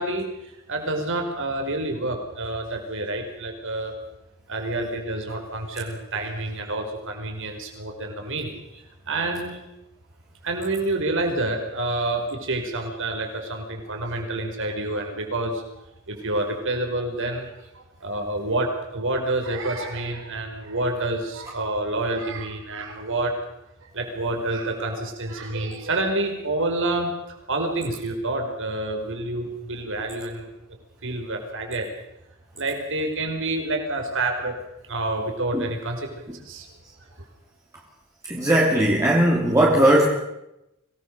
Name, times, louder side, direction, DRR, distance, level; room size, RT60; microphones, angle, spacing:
voice 1, 0.0-3.9 4.5-8.6 9.1-9.6 10.4-15.6 16.1-17.5 17.8-23.3 23.9-27.1 27.5-30.5 31.0-31.9 32.6-34.6 34.9-36.1 36.5-36.7, right 2 dB, 60° right, 3 dB, 5.3 m, -28 dB
voice 2, 38.3-40.1, right 1 dB, 15° right, -3 dB, 2.9 m, -18 dB
25.0 x 19.0 x 6.8 m, 0.87 s
head